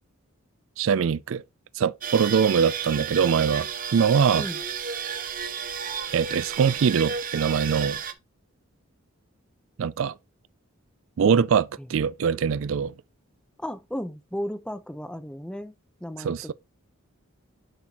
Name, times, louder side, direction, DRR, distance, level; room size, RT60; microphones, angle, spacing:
voice 1, 0.8-1.4 1.8-4.5 6.1-8.0 9.8-10.1 11.2-12.9 16.2-16.5, right 6 dB, 65° right, 0.4 m, -23 dB
sound 1, 2.0-8.1, right 7 dB, 40° right, 0.8 m, -32 dB
voice 2, 13.6-15.7 16.0-16.5, equal, 5° left, 0.6 m, -34 dB
11.0 x 4.4 x 2.9 m
head